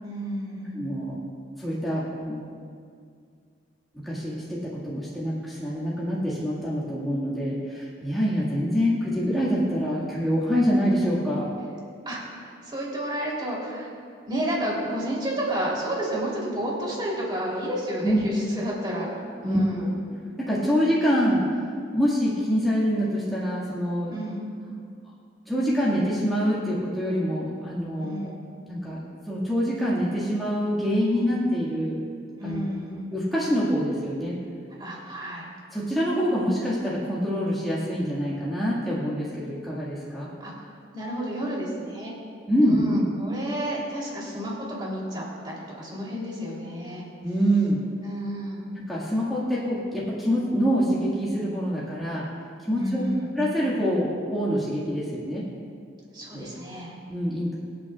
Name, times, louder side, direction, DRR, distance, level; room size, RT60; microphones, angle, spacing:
voice 1, 0.0-0.8 12.0-13.9 14.2-19.1 19.4-19.9 24.1-24.5 28.0-28.4 32.4-33.0 34.8-35.5 40.4-42.1 42.6-47.1 48.0-48.7 52.8-53.3 56.1-56.9, equal, 25° right, -4 dB, 3.2 m, -31 dB
voice 2, 0.7-1.2 1.6-2.5 3.9-11.5 18.0-18.2 19.4-19.9 20.4-24.1 25.5-28.3 28.7-29.0 29.3-32.0 32.4-32.7 33.1-34.3 35.7-40.3 42.5-43.0 47.2-47.8 48.9-52.3 52.6-53.0 53.4-55.5 56.3-56.5 57.1-57.6, equal, ahead, -9 dB, 1.8 m, -25 dB
24.5 x 8.6 x 2.4 m, 2.2 s
head